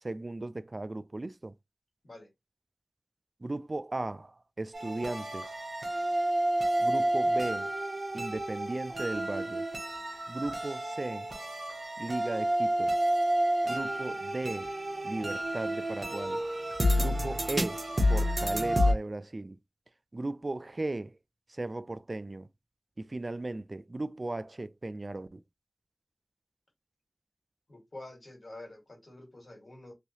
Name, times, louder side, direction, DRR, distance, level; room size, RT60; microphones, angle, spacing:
voice 1, 0.0-1.5 3.4-5.5 6.8-7.7 8.1-9.6 10.3-11.3 12.0-12.9 13.6-14.7 15.0-16.4 16.9-17.8 18.1-19.6 20.1-21.1 21.5-22.5 23.0-25.4, right 2 dB, 45° right, 0.3 m, -36 dB
sound 1, 4.7-18.9, equal, 65° right, 0.9 m, -30 dB
voice 2, 27.7-29.9, left 2 dB, 65° left, 1.8 m, -47 dB
3.2 x 2.6 x 2.9 m
wide cardioid pair, 55°, 0 cm